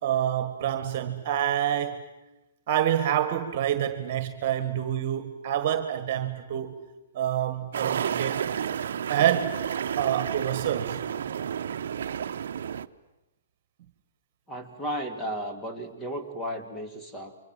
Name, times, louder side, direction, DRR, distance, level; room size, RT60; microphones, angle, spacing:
voice 1, 0.0-2.0 2.7-6.8 7.1-8.4 9.1-9.6 10.0-11.0, right 10 dB, 45° right, 1.8 m, -27 dB
sound 1, 7.7-12.9, right 8 dB, 70° right, 0.9 m, -31 dB
voice 2, 14.5-17.4, equal, 10° left, 2.7 m, -34 dB
28.5 x 24.0 x 7.7 m
hypercardioid pair, 150°, 0 cm